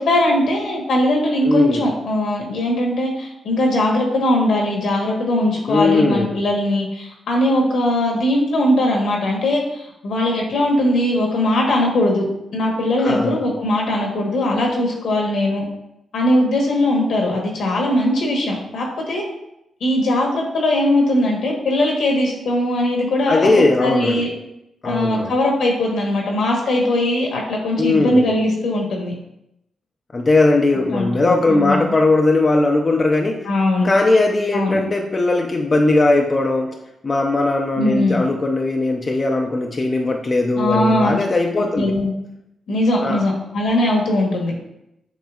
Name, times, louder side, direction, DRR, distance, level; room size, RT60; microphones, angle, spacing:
voice 1, 0.0-12.3 12.5-15.6 16.1-19.2 19.8-24.3 24.8-29.1 30.9-31.9 33.4-33.9 34.5-34.8 37.8-38.2 40.6-41.2 41.8-42.1 42.7-44.5, left 1 dB, 80° left, -1 dB, 1.1 m, -20 dB
voice 2, 1.4-1.9 5.7-6.4 13.0-13.4 23.3-24.3 24.8-25.3 27.8-28.2 30.1-33.5 33.8-36.8 37.0-41.9 43.0-43.2, left 2 dB, 35° left, 2 dB, 0.5 m, -18 dB
6.7 x 3.1 x 2.4 m, 0.83 s
cardioid pair, 75°, 0 cm